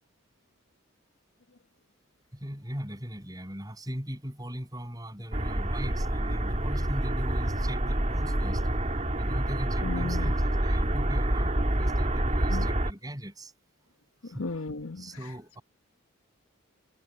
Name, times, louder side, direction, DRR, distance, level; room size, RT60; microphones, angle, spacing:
voice 1, 2.3-8.6 9.2-13.5 14.2-14.5 15.0-15.6, equal, 20° right, 7.3 m, -39 dB
sound 1, 5.3-12.9, right 1 dB, 35° right, 2.5 m, -27 dB
voice 2, 9.8-10.3 12.5-12.7 14.4-15.1, left 3 dB, 90° left, 1.4 m, -34 dB
head